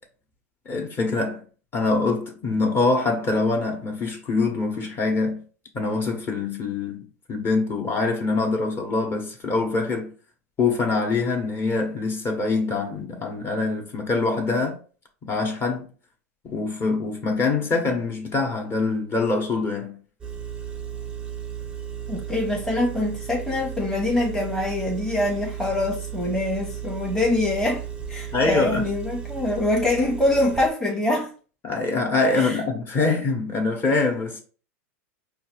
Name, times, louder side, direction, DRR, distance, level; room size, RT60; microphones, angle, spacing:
voice 1, 0.6-1.4 1.7-5.4 5.7-10.1 10.6-14.8 15.2-15.9 16.4-20.0 28.3-28.9 31.6-34.4, left 3 dB, 30° left, 1.2 m, -24 dB
Engine, 20.2-30.7, right 9 dB, 10° right, 0.6 m, -34 dB
voice 2, 22.1-31.3 32.3-32.6, left 2 dB, 5° left, 1.0 m, -24 dB
4.9 x 2.4 x 3.2 m
hypercardioid pair, 115°, 8 cm